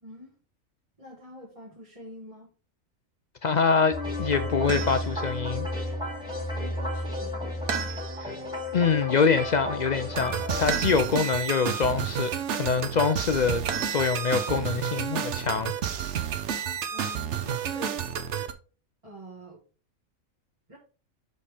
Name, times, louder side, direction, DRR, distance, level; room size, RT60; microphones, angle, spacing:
voice 1, 0.0-0.3 1.0-2.5 6.3-7.4 16.9-18.1 19.0-19.6 20.7-20.8, equal, 25° right, 1.3 m, -45 dB
voice 2, 3.4-5.7 8.2-8.3 8.7-13.6 13.9-15.7, left 5 dB, 70° left, 0.4 m, -25 dB
sound 1, 3.9-10.7, left 1 dB, 5° right, 2.4 m, -32 dB
sound 2, 4.7-5.2 7.7-8.4 10.7-11.4 13.7-14.6, right 7 dB, 85° right, 1.4 m, -34 dB
sound 3, 10.1-18.5, right 8 dB, 60° right, 1.0 m, -31 dB
6.7 x 5.2 x 3.4 m
omnidirectional pair, 1.4 m